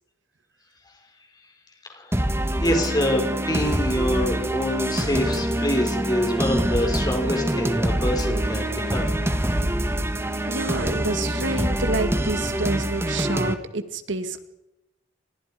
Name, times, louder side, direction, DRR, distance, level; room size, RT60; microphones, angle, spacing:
sound 1, 2.1-13.5, right 1 dB, 15° right, 1.6 m, -25 dB
voice 1, 2.6-9.1, left 1 dB, 20° left, 3 dB, 5.1 m, -25 dB
voice 2, 10.5-14.4, right 2 dB, 90° right, 9 dB, 2.0 m, -28 dB
30.0 x 26.5 x 5.2 m, 0.95 s
head